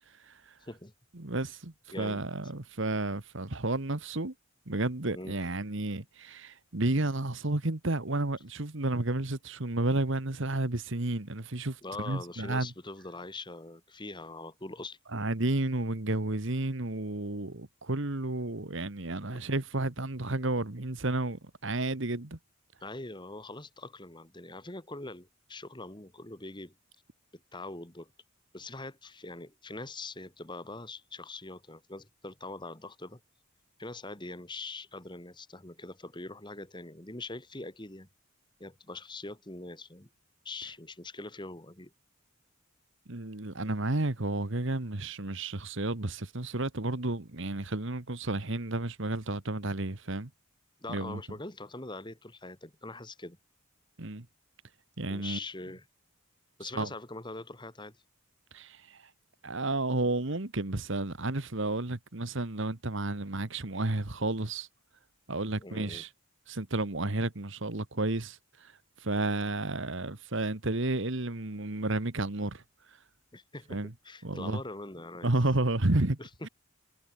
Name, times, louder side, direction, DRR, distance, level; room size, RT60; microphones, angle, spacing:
voice 1, 1.1-4.3 4.7-11.8 12.0-12.7 15.1-22.4 43.1-50.3 50.9-51.2 54.0-54.2 55.0-55.4 56.7-56.9 58.5-59.0 59.4-64.7 65.3-66.1 66.5-68.7 69.0-72.6 73.7-73.9 74.2-74.6 75.2-76.5, right 2 dB, 55° right, 1.6 m, -31 dB
voice 2, 1.9-2.2 5.1-5.4 11.8-15.0 22.8-26.7 27.5-28.1 28.5-33.2 33.8-38.1 38.6-40.1 40.4-41.9 50.8-53.4 55.1-55.8 56.6-58.0 65.6-66.0 73.3-73.8 74.0-75.3 76.2-76.3, left 2 dB, 20° left, 2.1 m, -43 dB
head